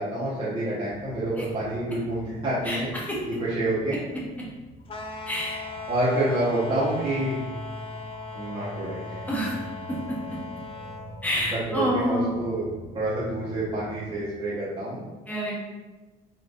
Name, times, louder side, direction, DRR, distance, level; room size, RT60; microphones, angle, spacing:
voice 1, 0.0-2.9 3.2-4.0 5.9-7.4 8.3-9.2 11.5-12.6 12.9-15.1, right 1 dB, 30° right, -10 dB, 1.3 m, -28 dB
sound 1, 0.8-14.2, right 1 dB, 60° left, 1.3 m, -43 dB
voice 2, 2.6-3.2 5.3-5.6 9.2-9.5 9.9-10.2 11.2-12.3 15.3-15.7, equal, 10° left, -5 dB, 1.3 m, -28 dB
sound 2, 4.9-11.1, left 4 dB, 35° left, 0.5 m, -39 dB
4.2 x 3.5 x 2.6 m, 1.2 s
cardioid pair, 110°, 17 cm